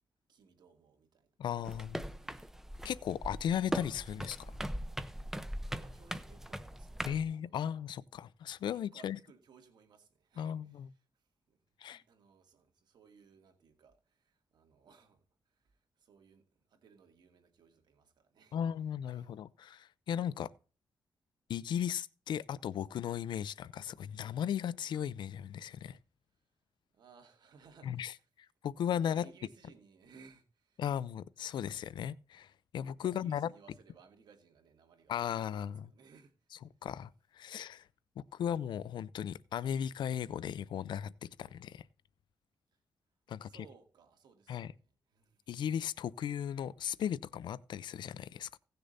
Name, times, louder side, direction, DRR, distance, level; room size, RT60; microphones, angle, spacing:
voice 1, 0.3-1.3 1.7-2.5 5.1-5.4 5.7-7.7 8.7-18.6 18.8-19.4 26.9-28.3 28.9-30.8 33.0-36.7 43.4-45.5, right 5 dB, 70° right, 2.4 m, -62 dB
voice 2, 1.4-2.0 2.8-4.6 7.0-9.2 10.4-10.9 11.8-12.0 18.5-20.5 21.5-26.0 27.8-28.1 28.6-29.2 30.8-33.5 35.1-35.9 36.8-37.8 38.2-41.8 43.3-43.5 44.5-44.7 45.5-48.6, left 9 dB, 80° left, 0.5 m, -36 dB
sound 1, 1.6-7.2, right 1 dB, 5° right, 0.5 m, -40 dB
16.5 x 6.7 x 4.0 m
wide cardioid pair, 180°, 8 cm